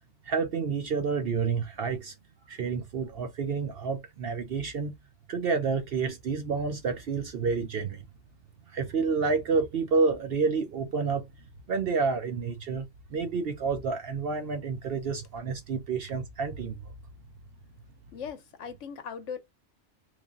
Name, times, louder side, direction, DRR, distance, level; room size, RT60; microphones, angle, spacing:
voice 1, 0.2-2.1 2.5-4.9 5.3-8.0 8.7-11.3 11.7-12.9 13.1-16.9, right 5 dB, 60° right, 0.7 m, -29 dB
voice 2, 18.1-19.4, left 7 dB, 70° left, 1.1 m, -39 dB
3.3 x 2.6 x 3.5 m
omnidirectional pair, 1.3 m